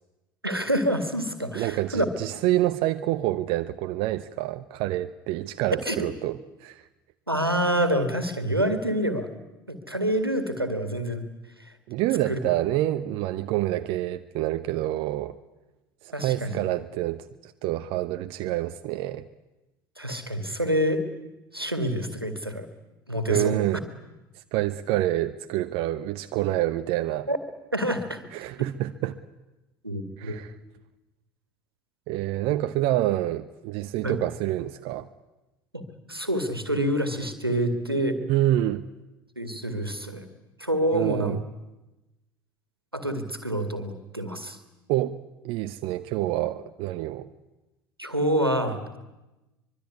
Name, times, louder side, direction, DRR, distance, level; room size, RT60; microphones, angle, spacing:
voice 1, 0.4-2.1 5.8-6.0 7.3-9.3 9.7-11.3 11.6-11.7 12.2-12.4 16.1-16.7 20.0-21.0 21.5-22.7 23.1-23.6 27.3-27.4 27.7-28.3 29.8-30.4 34.0-34.2 35.7-38.2 39.4-40.3 40.6-41.4 42.9-44.6 48.0-48.8, equal, 90° right, 9 dB, 2.1 m, -27 dB
voice 2, 1.5-6.8 11.9-15.4 16.0-19.3 23.3-23.8 24.5-27.3 28.3-29.2 30.2-30.5 32.1-35.1 38.3-38.9 40.9-41.4 44.9-45.2 45.4-47.3, right 15 dB, 50° right, 10 dB, 0.9 m, -27 dB
24.5 x 22.5 x 9.6 m, 1.0 s
figure-of-eight pair, 65°, 12 cm